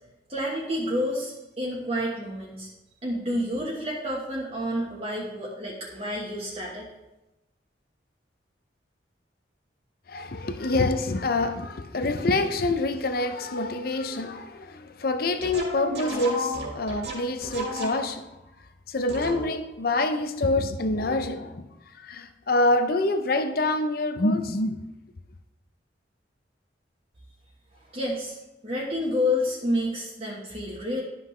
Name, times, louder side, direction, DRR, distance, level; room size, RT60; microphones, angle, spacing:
voice 1, 0.3-2.7 3.0-6.8 27.9-28.3 28.6-31.0, left 1 dB, 35° right, 1.2 m, -29 dB
voice 2, 10.1-18.3 18.9-21.7 22.0-24.9, left 2 dB, 55° left, 0.6 m, -26 dB
sound 1, 15.4-18.3 19.1-19.7, equal, 65° right, 2.5 m, -33 dB
12.0 x 5.6 x 3.2 m
head